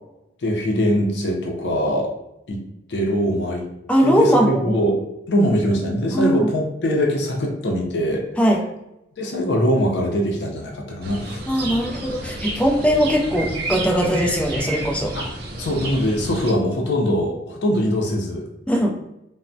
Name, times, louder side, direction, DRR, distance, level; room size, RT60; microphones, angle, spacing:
voice 1, 0.4-2.1 2.5-2.6 2.9-3.7 4.0-5.0 5.3-8.2 9.2-11.4 15.1-15.3 15.6-18.5, equal, 65° left, 0 dB, 0.5 m, -22 dB
voice 2, 3.9-4.8 6.1-6.5 8.4-8.7 11.5-15.1 18.7-18.9, equal, 5° left, 0 dB, 0.3 m, -20 dB
sound 1, 11.0-16.5, right 1 dB, 60° right, 0.6 m, -31 dB
3.3 x 2.0 x 2.6 m, 0.87 s
head